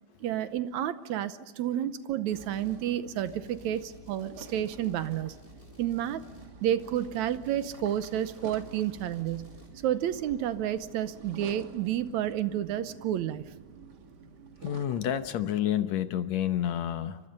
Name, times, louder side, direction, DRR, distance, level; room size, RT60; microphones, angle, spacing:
voice 1, 0.2-5.4 5.8-6.2 6.6-9.6 9.8-13.5, right 11 dB, 75° right, 12 dB, 2.2 m, -30 dB
sound 1, 2.3-2.9 3.3-9.7, left 4 dB, 5° right, 4.7 m, -55 dB
sound 2, 2.3-15.4, right 4 dB, 40° right, 2.0 m, -50 dB
voice 2, 14.6-17.2, left 10 dB, 70° left, 10 dB, 2.2 m, -29 dB
29.5 x 24.5 x 5.4 m, 1.4 s
omnidirectional pair, 3.4 m